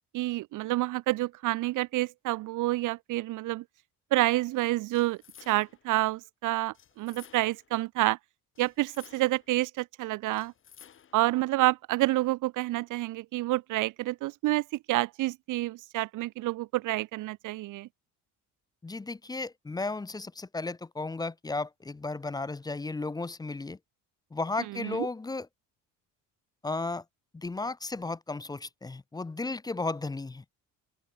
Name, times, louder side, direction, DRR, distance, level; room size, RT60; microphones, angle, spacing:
voice 1, 0.1-3.6 4.1-5.2 5.5-8.2 8.6-10.5 11.1-17.9 24.8-25.1, right 18 dB, 60° right, 0.7 m, -28 dB
sound 1, 4.9-5.9 6.7-7.7 8.6-9.5 10.3-11.3, left 8 dB, 35° left, 7.1 m, -55 dB
voice 2, 18.8-23.8 24.3-25.5 26.6-27.0 27.3-30.4, left 3 dB, 10° left, 1.0 m, -34 dB
open air
cardioid pair, 170°, 34 cm